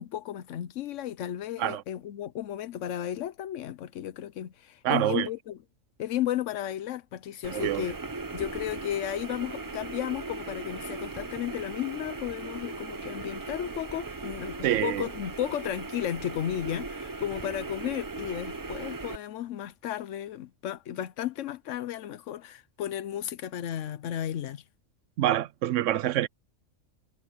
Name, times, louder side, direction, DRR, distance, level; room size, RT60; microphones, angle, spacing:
voice 1, 0.0-5.6 6.0-8.0 8.3-24.6, left 11 dB, 90° left, 1.0 m, -34 dB
voice 2, 4.8-5.3 7.5-7.9 14.6-15.0 25.2-26.3, right 12 dB, 85° right, 1.0 m, -26 dB
sound 1, 7.4-19.2, right 3 dB, 25° right, 0.5 m, -38 dB
omnidirectional pair, 1.2 m